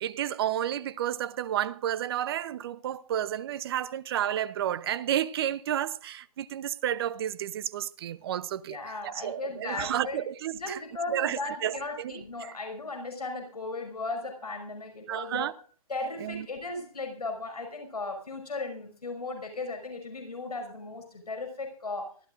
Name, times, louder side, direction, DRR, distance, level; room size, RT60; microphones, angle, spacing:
voice 1, 0.0-8.8 9.0-10.8 11.1-12.1 12.4-12.6 15.1-15.5 16.2-16.5, right 11 dB, 40° right, 0.8 m, -31 dB
voice 2, 8.6-10.2 10.5-15.5 15.9-22.1, left 3 dB, 85° left, 5.9 m, -36 dB
24.5 x 14.5 x 2.6 m
hypercardioid pair, 145°, 19 cm